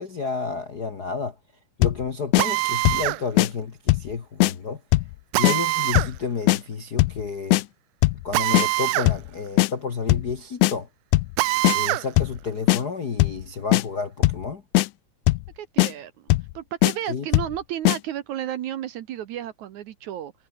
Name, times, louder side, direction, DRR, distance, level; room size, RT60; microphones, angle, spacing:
voice 1, 0.0-1.4 1.8-4.8 5.3-7.6 8.2-10.9 11.7-14.6 17.1-17.3, left 5 dB, 45° left, 1.2 m, -31 dB
sound 1, 1.8-2.0 2.3-2.5 2.9-3.1 3.4-3.5 3.9-4.1 4.4-4.5 4.9-5.1 5.4-5.6 6.0-6.2 6.5-6.6 7.0-7.2 7.5-7.6 8.0-8.2 8.5-8.7 9.1-9.3 9.6-9.7 10.1-10.3 10.6-10.7 11.1-11.4 11.6-11.8 12.2-12.4 12.7-12.8 13.2-13.4 13.7-13.8 14.2-14.5 14.7-14.9 15.3-15.5 15.8-15.9 16.3-16.5 16.8-16.9 17.3-17.6 17.9-18.0, left 18 dB, 90° left, 1.6 m, -19 dB
Drill, 2.4-3.2 5.3-6.1 8.3-9.1 9.5-9.6 11.4-12.1, right 22 dB, 85° right, 1.8 m, -24 dB
voice 2, 15.6-20.3, right 11 dB, 65° right, 2.2 m, -33 dB
omnidirectional pair, 4.1 m